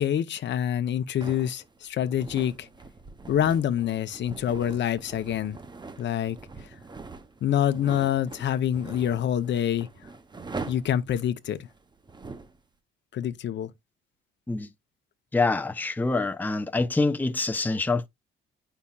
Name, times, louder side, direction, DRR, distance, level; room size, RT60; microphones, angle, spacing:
voice 1, 0.0-2.7 3.3-5.6 6.0-6.4 7.4-9.9 10.7-11.6 13.1-13.7, left 10 dB, 65° left, 0.8 m, -26 dB
sound 1, 1.2-12.6, right 3 dB, 20° right, 0.9 m, -43 dB
voice 2, 15.3-18.1, left 3 dB, 10° left, 0.7 m, -25 dB
8.3 x 5.7 x 2.4 m
cardioid pair, 90°, 20 cm